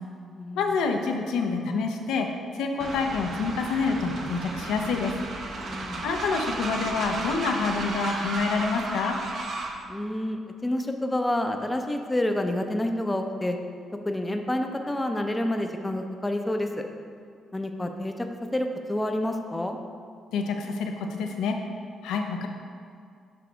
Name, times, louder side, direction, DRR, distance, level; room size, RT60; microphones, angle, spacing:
voice 1, 0.6-2.3 2.5-5.2 6.0-9.2 20.3-21.6 22.0-22.5, left 4 dB, 90° left, 3 dB, 0.6 m, -27 dB
Train, 2.8-9.8, right 3 dB, 60° right, 0.7 m, -34 dB
voice 2, 5.6-6.1 9.9-13.6 14.0-16.8 17.5-19.8, left 1 dB, 15° left, 4 dB, 0.5 m, -28 dB
6.9 x 3.3 x 5.0 m, 2.3 s
cardioid pair, 90°, 0 cm